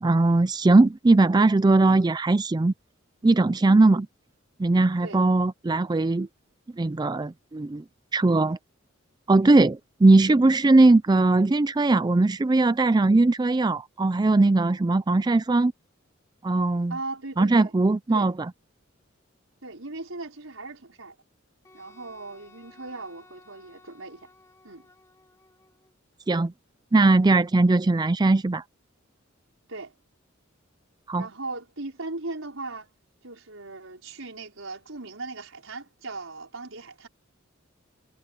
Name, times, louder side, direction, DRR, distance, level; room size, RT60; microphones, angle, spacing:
voice 1, 0.0-2.7 3.2-4.1 4.6-6.3 6.8-7.8 8.1-8.6 9.3-15.7 16.4-17.0 17.4-18.3 26.3-26.5 26.9-28.6 31.1-31.3, right 2 dB, 20° right, 0.4 m, -20 dB
voice 2, 16.9-17.7 18.1-18.3 19.6-21.1 21.7-24.3 24.6-24.9 29.7-29.9 31.1-32.9 33.2-37.1, right 2 dB, 80° right, 4.8 m, -38 dB
Wind instrument woodwind instrument, 21.6-25.9, left 2 dB, 15° left, 2.6 m, -56 dB
head